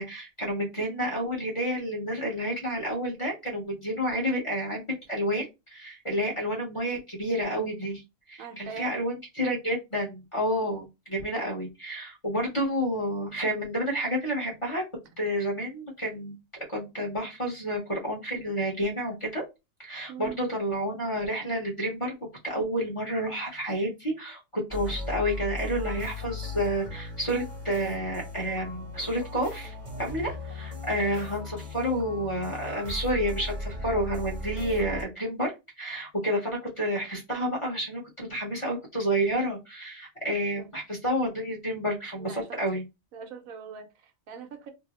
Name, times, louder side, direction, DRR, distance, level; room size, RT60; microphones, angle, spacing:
voice 1, 0.0-8.0 8.3-14.8 15.2-16.3 16.7-19.4 19.8-22.2 22.4-35.5 35.8-42.8, equal, 25° left, 0.8 m, -30 dB
voice 2, 8.4-9.0 20.1-20.5 40.6-40.7 42.2-42.6 43.1-44.7, right 6 dB, 80° right, 1.1 m, -42 dB
sound 1, 24.7-35.0, left 2 dB, 40° right, 0.8 m, -37 dB
2.7 x 2.0 x 4.0 m
omnidirectional pair, 1.4 m